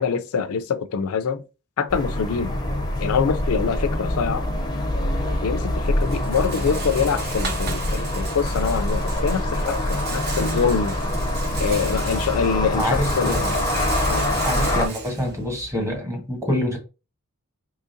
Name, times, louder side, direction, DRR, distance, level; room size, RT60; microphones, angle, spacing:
voice 1, 0.0-1.4 1.8-2.5 3.0-4.5 5.4-11.0 11.6-13.3 14.1-14.3, left 6 dB, 70° left, 0.4 m, -25 dB
sound 1, 1.9-14.9, left 1 dB, 20° left, 0.5 m, -25 dB
Rattle, 4.9-16.0, right 4 dB, 45° right, 0.7 m, -36 dB
voice 2, 12.8-13.5 14.4-16.8, left 1 dB, 15° right, 1.1 m, -26 dB
3.7 x 3.0 x 2.6 m
head